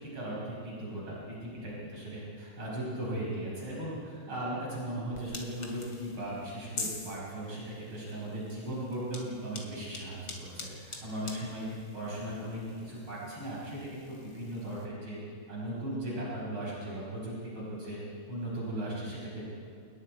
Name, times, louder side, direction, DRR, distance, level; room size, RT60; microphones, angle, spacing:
voice 1, 0.1-10.2 10.5-11.7 11.9-15.2 15.5-18.0 18.3-19.5, right 1 dB, 80° right, -6 dB, 6.7 m, -37 dB
sound 1, 5.1-14.9, left 3 dB, 70° left, 3.2 m, -46 dB
28.0 x 20.0 x 4.7 m, 2.4 s
omnidirectional pair, 2.3 m